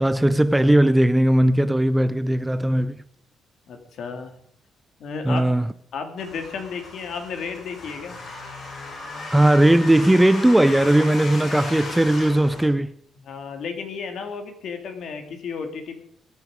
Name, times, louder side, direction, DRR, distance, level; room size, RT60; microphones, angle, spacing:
voice 1, 0.0-3.0 5.2-5.7 9.3-12.9, right 1 dB, 5° right, 0.5 m, -18 dB
voice 2, 3.7-4.3 5.0-5.6 5.9-8.2 13.2-16.0, left 5 dB, 60° left, 2.9 m, -33 dB
sound 1, 6.2-12.6, left 2 dB, 45° left, 7.6 m, -36 dB
21.0 x 9.5 x 5.1 m
cardioid pair, 130°, 0 cm